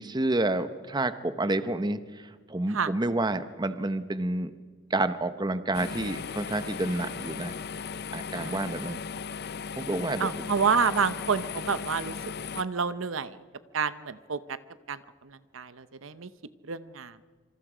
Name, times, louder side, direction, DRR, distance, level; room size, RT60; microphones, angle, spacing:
voice 1, 0.0-4.5 4.9-7.5 8.1-9.0 9.8-10.3, right 2 dB, 20° right, 11 dB, 0.8 m, -29 dB
sound 1, 5.7-12.6, left 6 dB, 50° left, 0.6 m, -37 dB
voice 2, 8.3-8.7 10.2-12.2 12.6-13.4 13.7-14.6 14.9-15.0 15.2-16.3 16.7-17.2, right 5 dB, 70° right, 14 dB, 0.8 m, -29 dB
26.5 x 25.5 x 5.0 m, 1.5 s
head